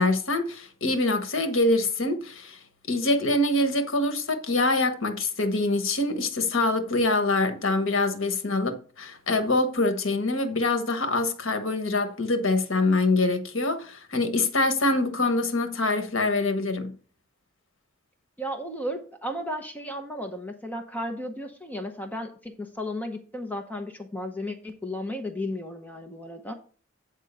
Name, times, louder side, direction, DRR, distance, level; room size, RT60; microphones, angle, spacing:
voice 1, 0.0-2.6 2.9-16.9, left 2 dB, 75° left, 1.2 m, -25 dB
voice 2, 18.4-26.5, left 1 dB, 10° left, 0.8 m, -34 dB
8.8 x 3.7 x 6.7 m
head